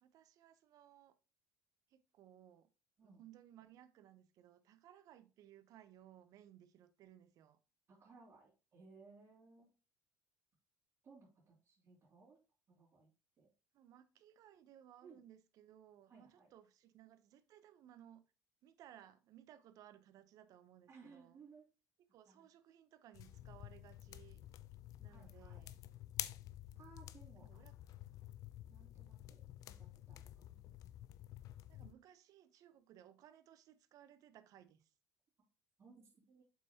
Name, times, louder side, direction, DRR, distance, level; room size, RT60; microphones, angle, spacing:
voice 1, 0.0-1.2 1.9-2.7 3.0-7.6 13.7-18.2 18.6-21.4 22.0-24.4 25.0-25.8 27.4-27.8 31.7-34.9, right 11 dB, 60° right, 0.8 m, -61 dB
voice 2, 7.9-9.7 11.0-12.4 12.7-13.1 13.4-13.5 15.0-15.2 16.1-16.5 20.9-21.6 22.3-22.5 25.1-25.6 26.7-27.6 28.7-30.6 35.8-36.4, right 4 dB, 40° right, 3.1 m, -62 dB
sound 1, 23.1-31.9, left 13 dB, 60° left, 0.5 m, -50 dB
7.4 x 5.7 x 2.9 m
hypercardioid pair, 75°, 7 cm